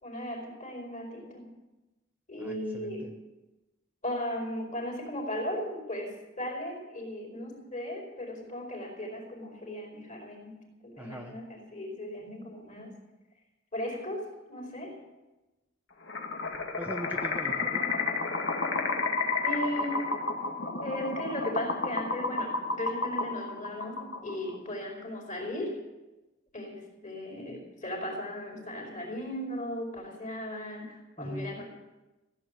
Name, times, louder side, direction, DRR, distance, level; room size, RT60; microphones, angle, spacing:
voice 1, 0.0-1.5 2.3-3.1 4.0-12.9 13.7-14.9 19.4-20.1 20.8-25.8 26.5-31.7, left 1 dB, 40° left, 1 dB, 4.8 m, -37 dB
voice 2, 2.4-3.1 11.0-11.4 16.8-17.9 31.2-31.6, equal, 10° right, 2 dB, 1.0 m, -40 dB
sound 1, 16.1-24.5, left 3 dB, 70° left, 2.2 m, -31 dB
16.0 x 8.4 x 9.4 m, 1.1 s
head